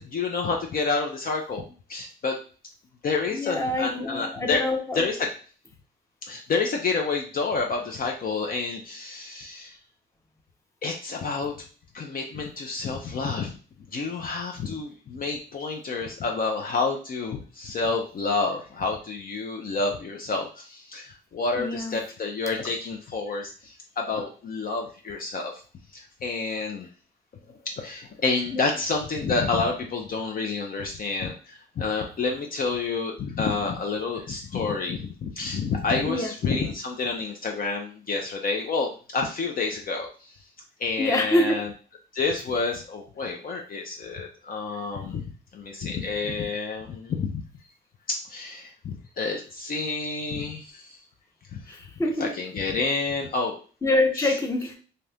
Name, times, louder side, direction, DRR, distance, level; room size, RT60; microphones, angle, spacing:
voice 1, 0.0-2.3 3.0-4.6 5.0-5.3 6.3-9.8 10.8-11.6 11.9-13.6 13.9-25.5 25.9-26.9 27.8-40.3 40.8-41.7 42.1-47.4 48.1-51.0 51.5-51.8 52.2-53.6 54.2-54.3, left 4 dB, 45° left, 2 dB, 0.6 m, -29 dB
voice 2, 3.3-5.1 21.6-22.0 28.5-28.7 36.1-36.3 41.0-41.6 51.7-52.3 53.8-54.7, left 1 dB, 15° left, 2 dB, 0.8 m, -25 dB
2.8 x 2.5 x 3.3 m, 0.39 s
cardioid pair, 90°, 20 cm